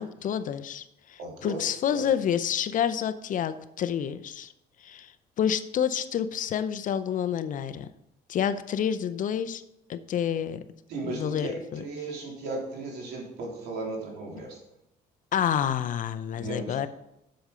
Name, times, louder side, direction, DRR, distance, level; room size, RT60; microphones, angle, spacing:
voice 1, 0.0-4.5 4.8-7.9 8.3-9.6 9.9-10.6 11.1-11.8 15.3-16.9, left 9 dB, 50° left, 13 dB, 0.6 m, -29 dB
voice 2, 1.2-1.6 1.9-2.0 10.9-14.6 16.3-16.9, right 2 dB, 75° right, -1 dB, 3.2 m, -36 dB
7.8 x 6.8 x 5.0 m, 0.86 s
cardioid pair, 110°, 17 cm